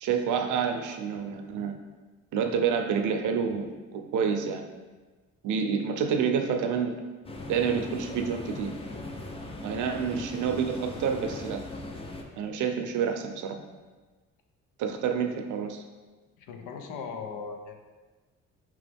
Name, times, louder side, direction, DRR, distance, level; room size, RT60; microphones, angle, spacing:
voice 1, 0.0-1.8 2.3-4.7 5.4-7.0 7.5-8.7 9.6-11.6 12.4-13.6 14.8-15.8, right 6 dB, 75° right, 6 dB, 0.6 m, -28 dB
sound 1, 7.2-12.2, left 2 dB, 20° left, 0.5 m, -39 dB
voice 2, 16.4-17.8, left 5 dB, 90° left, 4 dB, 0.6 m, -39 dB
4.7 x 3.0 x 3.4 m, 1.3 s
cardioid pair, 90°, 30 cm